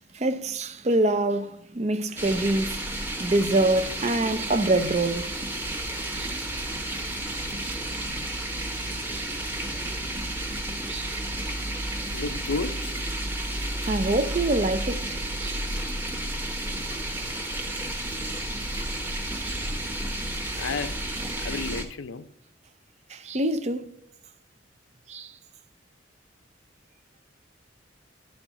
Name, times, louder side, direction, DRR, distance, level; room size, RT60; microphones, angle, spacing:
voice 1, 0.1-2.8 3.2-5.3 6.1-6.4 7.6-7.8 9.1-9.3 10.9-11.2 13.8-15.7 18.7-18.8 19.3-19.7 23.1-24.0 25.1-25.3, right 2 dB, 35° right, 0.5 m, -26 dB
sound 1, 2.2-21.8, right 1 dB, 10° right, 1.0 m, -32 dB
voice 2, 12.1-12.9 20.6-21.0 21.4-22.3, left 4 dB, 85° left, 0.5 m, -32 dB
11.0 x 4.3 x 5.7 m
head